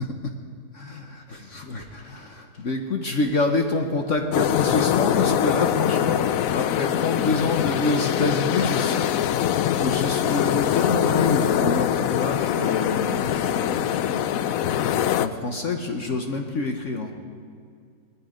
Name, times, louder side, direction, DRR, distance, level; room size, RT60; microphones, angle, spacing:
voice 1, 0.7-6.3 6.5-9.3 9.8-14.6 14.9-17.1, left 3 dB, 50° left, 3 dB, 1.2 m, -27 dB
sound 1, 4.3-15.3, left 10 dB, 70° left, 0.8 m, -23 dB
19.5 x 13.0 x 5.1 m, 2.2 s
omnidirectional pair, 1.9 m